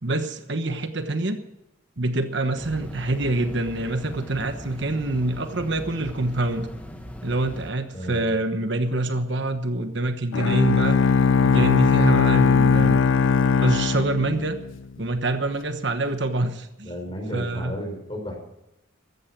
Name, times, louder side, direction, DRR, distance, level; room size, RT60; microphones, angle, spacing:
voice 1, 0.0-1.4 2.0-6.7 7.2-11.0 11.4-13.0 13.6-14.6 15.0-16.9 17.3-17.7, right 2 dB, 60° right, 8 dB, 1.2 m, -26 dB
sound 1, 2.6-7.7, equal, 5° left, 1.5 m, -39 dB
voice 2, 7.9-8.3 16.8-18.4, equal, 25° left, 3 dB, 5.2 m, -33 dB
Bowed string instrument, 10.3-14.8, left 5 dB, 70° left, 0.4 m, -19 dB
15.0 x 14.0 x 6.0 m, 0.89 s
head